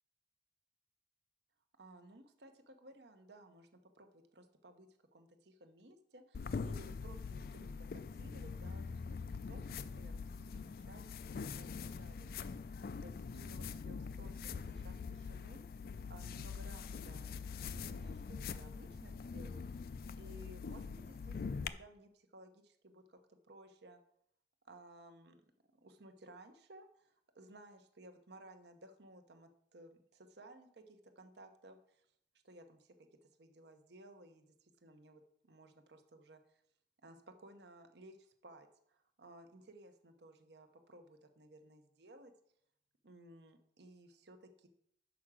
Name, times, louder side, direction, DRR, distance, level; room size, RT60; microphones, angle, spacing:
voice 1, 1.8-12.6 13.0-15.6 16.1-19.7 20.2-24.0 24.6-25.4 25.7-32.1 32.4-36.6 37.0-42.3 43.0-44.7, right 1 dB, 70° right, 7 dB, 0.9 m, -58 dB
sound 1, 6.3-21.7, left 5 dB, 55° left, 0.3 m, -43 dB
6.1 x 4.8 x 6.1 m, 0.69 s
head